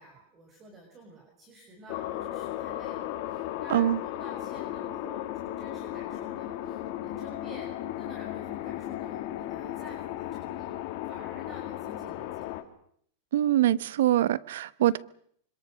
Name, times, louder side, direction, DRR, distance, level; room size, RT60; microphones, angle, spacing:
voice 1, 0.0-10.7 11.1-12.5, right 1 dB, 25° right, 2 dB, 6.2 m, -50 dB
sound 1, 1.9-12.6, left 13 dB, 50° left, 2.8 m, -35 dB
voice 2, 3.7-4.0 13.3-15.0, right 12 dB, 75° right, 18 dB, 1.0 m, -24 dB
26.0 x 26.0 x 6.5 m, 0.65 s
supercardioid pair, 145°, 0 cm